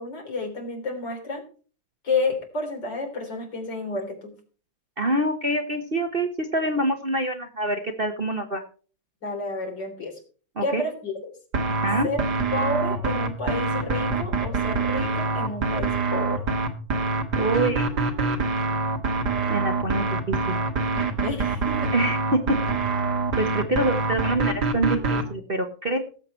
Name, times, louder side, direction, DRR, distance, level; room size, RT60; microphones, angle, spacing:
voice 1, 0.0-1.4 2.0-4.3 9.2-10.2 10.6-11.1 12.0-12.2 12.5-16.4 21.2-21.9, left 2 dB, 65° left, 3 dB, 4.0 m, -30 dB
voice 2, 5.0-8.6 10.6-10.8 11.8-12.1 17.3-17.9 19.5-20.6 21.9-22.6 23.4-26.0, right 1 dB, 35° right, 5 dB, 1.1 m, -25 dB
sound 1, 11.5-25.2, right 3 dB, 60° right, 2.2 m, -25 dB
17.5 x 7.7 x 4.4 m, 0.39 s
omnidirectional pair, 2.1 m